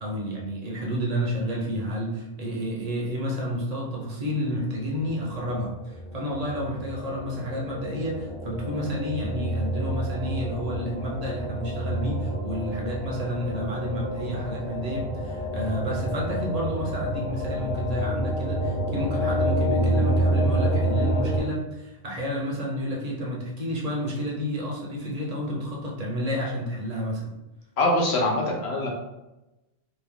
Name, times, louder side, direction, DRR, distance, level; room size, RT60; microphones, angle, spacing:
voice 1, 0.0-27.3, equal, 40° right, -2 dB, 0.7 m, -30 dB
sound 1, 5.5-21.4, right 1 dB, 55° left, 1.3 m, -28 dB
voice 2, 27.8-28.9, left 1 dB, 70° left, -2 dB, 1.0 m, -23 dB
3.0 x 2.3 x 3.4 m, 0.98 s
omnidirectional pair, 1.1 m